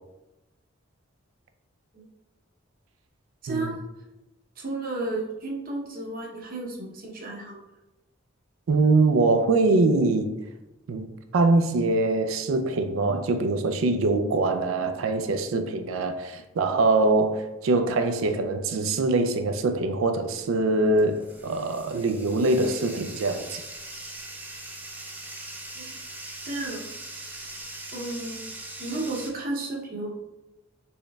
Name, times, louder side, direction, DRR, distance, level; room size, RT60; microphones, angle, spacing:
voice 1, 3.4-3.8 4.6-7.6 25.7-25.9 26.4-26.8 27.2-27.5 27.9-28.4 28.8-30.1, right 2 dB, 45° right, 0.7 m, -33 dB
voice 2, 8.7-10.4 10.9-11.1 11.3-23.6, right 3 dB, 85° right, 0.4 m, -23 dB
Bathtub (filling or washing), 20.1-29.3, right 2 dB, 10° right, 0.4 m, -41 dB
4.4 x 3.1 x 2.2 m
head